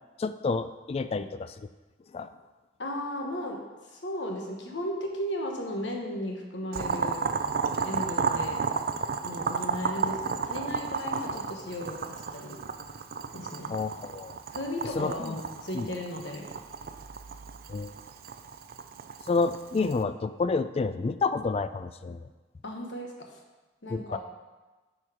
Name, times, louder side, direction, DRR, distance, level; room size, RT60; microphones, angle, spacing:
voice 1, 0.2-1.5 2.1-2.3 13.7-14.3 15.0-15.3 15.7-15.9 17.7-17.9 19.3-22.2 23.9-24.2, left 4 dB, 35° left, 12 dB, 0.3 m, -29 dB
voice 2, 2.8-3.6 3.9-7.2 7.8-8.6 9.2-12.6 13.3-13.8 14.5-16.5 22.6-23.1 23.8-24.2, left 1 dB, 70° left, 1 dB, 1.3 m, -35 dB
Boiling, 6.7-20.0, right 5 dB, 55° right, 0.4 m, -33 dB
8.8 x 4.6 x 5.0 m, 1.2 s
head